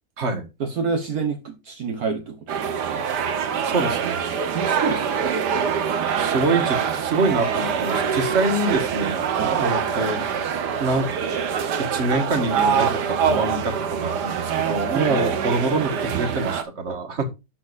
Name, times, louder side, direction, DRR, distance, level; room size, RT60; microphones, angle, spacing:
voice 1, 0.6-3.0 4.5-5.4 9.4-9.6 15.1-15.2, right 5 dB, 65° right, 5 dB, 1.6 m, -28 dB
sound 1, 2.5-16.6, right 7 dB, 80° right, 1.7 m, -24 dB
voice 2, 3.6-4.2 6.2-10.5 10.8-11.1 11.9-17.3, right 2 dB, 45° right, 8 dB, 1.9 m, -25 dB
12.5 x 6.4 x 2.6 m, 0.26 s
omnidirectional pair, 1.8 m